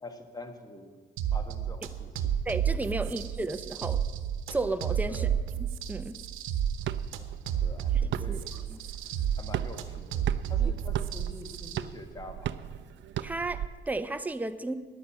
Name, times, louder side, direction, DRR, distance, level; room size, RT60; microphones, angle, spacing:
voice 1, 0.0-1.0 1.3-2.4 3.0-3.2 5.1-5.4 7.6-8.5 9.4-12.6, left 2 dB, 20° left, 7 dB, 1.4 m, -45 dB
sound 1, 1.2-11.8, right 9 dB, 85° right, 0.9 m, -31 dB
voice 2, 2.5-4.0 4.5-5.3 5.6-6.1 8.3-8.4 8.7-8.8 13.2-14.8, right 2 dB, 10° right, 9 dB, 0.6 m, -33 dB
sound 2, 6.8-13.7, right 11 dB, 65° right, 0.5 m, -37 dB
10.5 x 9.3 x 7.4 m, 1.5 s
cardioid pair, 90°, 20 cm